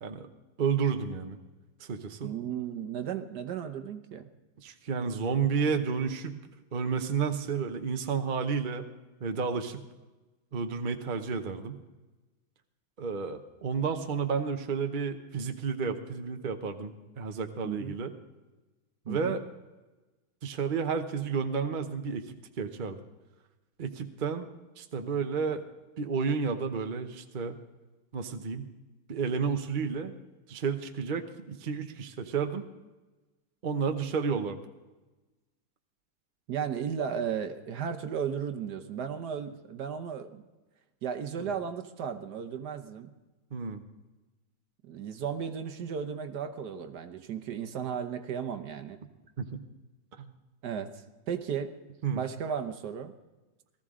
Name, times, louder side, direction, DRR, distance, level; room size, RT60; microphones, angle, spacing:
voice 1, 0.6-1.4 1.8-2.3 4.6-6.4 6.7-8.9 9.2-9.8 10.5-11.8 13.0-18.1 19.1-19.4 20.4-23.0 23.8-24.5 24.8-25.6 26.0-27.6 28.1-28.7 29.1-30.1 30.5-32.6 33.6-34.6 41.4-41.5 43.5-43.8 49.4-49.6 50.2-50.3 52.0-52.2, right 6 dB, 45° right, 6 dB, 0.6 m, -31 dB
voice 2, 2.2-4.3 17.6-17.9 19.1-19.4 36.5-40.4 41.0-43.1 44.8-49.0 50.6-50.9 51.3-51.7 52.1-53.1, right 7 dB, 60° right, 6 dB, 1.4 m, -35 dB
18.5 x 14.0 x 3.7 m, 1.1 s
omnidirectional pair, 2.1 m